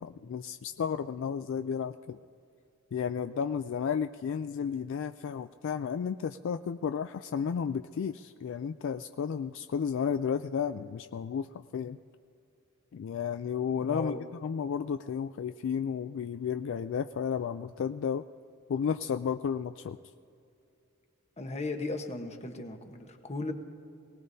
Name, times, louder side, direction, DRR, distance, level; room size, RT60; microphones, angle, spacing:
voice 1, 0.0-2.2 2.9-11.5 11.7-12.0 12.9-14.1 14.4-18.2 18.7-20.0, left 7 dB, 65° left, 10 dB, 0.3 m, -32 dB
voice 2, 13.8-14.2 21.4-23.5, left 2 dB, 30° left, 5 dB, 1.1 m, -36 dB
22.5 x 18.5 x 2.7 m, 2.6 s
head